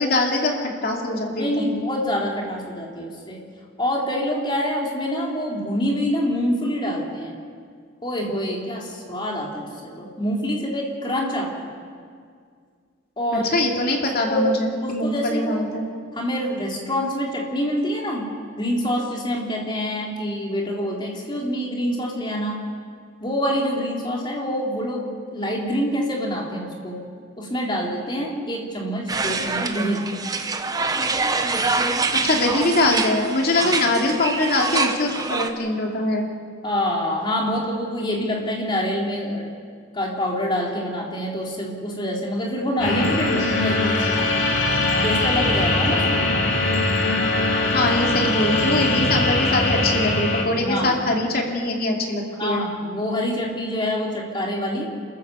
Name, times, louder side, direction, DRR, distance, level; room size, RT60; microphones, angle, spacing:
voice 1, 0.0-1.7 13.3-15.9 32.1-36.3 47.7-52.6, left 2 dB, 50° left, 1 dB, 2.7 m, -23 dB
voice 2, 1.4-3.4 3.8-7.3 8.0-11.7 13.2-13.5 14.3-14.5 14.8-15.7 16.1-18.3 18.6-22.6 23.2-27.0 27.4-30.0 33.6-33.7 36.6-39.5 39.9-44.3 45.0-46.3 50.6-51.0 52.4-54.9, equal, 25° left, -1 dB, 3.4 m, -26 dB
sound 1, 29.1-35.5, right 3 dB, 20° right, 1.0 m, -25 dB
sound 2, 42.8-50.4, left 2 dB, 70° left, 3.3 m, -21 dB
28.0 x 14.5 x 7.1 m, 2.1 s
head